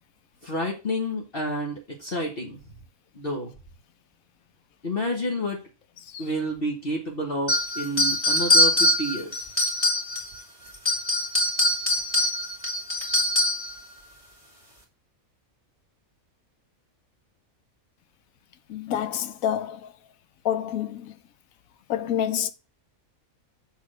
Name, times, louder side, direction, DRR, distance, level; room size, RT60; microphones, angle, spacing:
voice 1, 0.4-2.6 3.1-3.5 4.8-5.6 6.2-9.5, equal, 45° left, 1.4 m, -29 dB
sound 1, 7.5-10.4 10.7-13.7, left 1 dB, 20° left, 2.3 m, -23 dB
voice 2, 18.7-19.9 20.4-21.1 21.9-22.5, left 10 dB, 80° left, 1.0 m, -28 dB
6.3 x 3.7 x 6.2 m
omnidirectional pair, 1.5 m